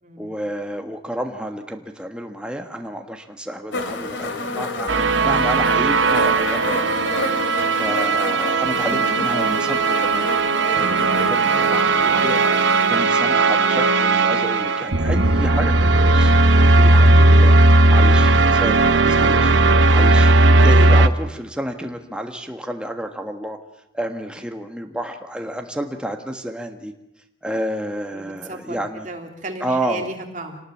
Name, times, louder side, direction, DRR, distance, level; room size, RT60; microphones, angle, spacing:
voice 1, 0.2-4.9 5.2-6.9 7.7-16.3 16.8-17.6 17.9-19.5 19.9-23.6 23.9-26.9 27.4-29.1 29.6-30.1, right 1 dB, 5° right, 4 dB, 1.5 m, -30 dB
sound 1, 3.7-14.8 15.7-15.8, left 3 dB, 75° left, 2.5 m, -30 dB
sound 2, 4.9-21.1, right 2 dB, 75° right, 1.0 m, -16 dB
voice 2, 28.1-30.6, right 2 dB, 40° right, 2 dB, 3.3 m, -35 dB
26.5 x 19.5 x 7.3 m, 0.83 s
head